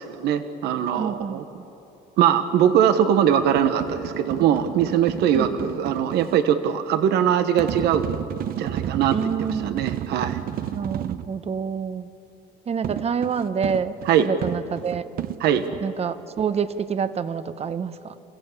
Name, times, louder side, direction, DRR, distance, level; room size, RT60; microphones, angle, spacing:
voice 1, 0.0-1.4 2.2-8.1 8.6-10.4 14.0-14.3 15.4-15.6, right 9 dB, 80° right, 9 dB, 1.2 m, -21 dB
voice 2, 1.0-1.6 5.3-5.7 9.1-9.8 10.7-12.1 12.7-15.0 15.8-18.2, right 6 dB, 40° right, 12 dB, 1.1 m, -27 dB
sound 1, 3.4-6.3 7.6-11.3 12.8-15.8, right 11 dB, 60° right, 0.8 m, -31 dB
28.5 x 15.5 x 8.3 m, 2.9 s
cardioid pair, 110°, 17 cm